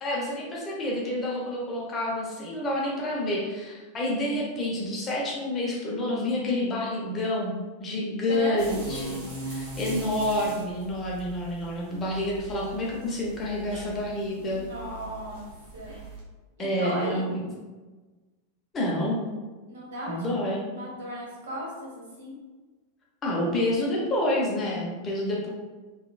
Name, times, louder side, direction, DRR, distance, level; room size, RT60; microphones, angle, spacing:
voice 1, 0.0-9.2 9.5-14.6 16.6-17.4 18.7-19.2 20.1-20.6 23.2-25.5, left 1 dB, 20° left, -4 dB, 0.8 m, -28 dB
voice 2, 8.2-9.2 14.5-16.0 16.6-17.2 19.7-22.3, equal, 65° right, -4 dB, 1.1 m, -36 dB
sound 1, 8.6-16.2, right 2 dB, 40° right, 1.1 m, -40 dB
3.8 x 2.3 x 2.3 m, 1.3 s
figure-of-eight pair, 90°, 0 cm